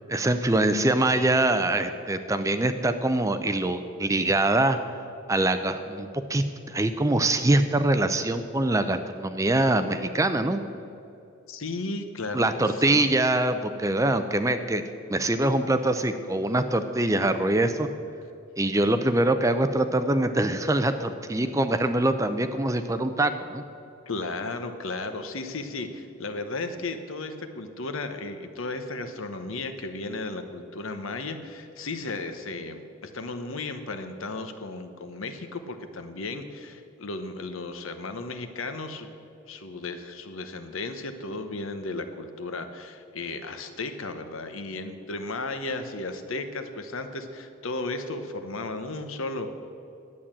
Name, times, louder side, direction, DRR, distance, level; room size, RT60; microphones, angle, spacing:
voice 1, 0.1-4.8 5.3-10.6 12.3-14.8 15.1-17.9 18.6-23.6, right 2 dB, 15° right, 9 dB, 0.5 m, -24 dB
voice 2, 11.5-13.0 24.1-39.1 39.5-49.5, left 3 dB, 75° left, 8 dB, 1.0 m, -34 dB
11.0 x 8.6 x 7.4 m, 2.7 s
head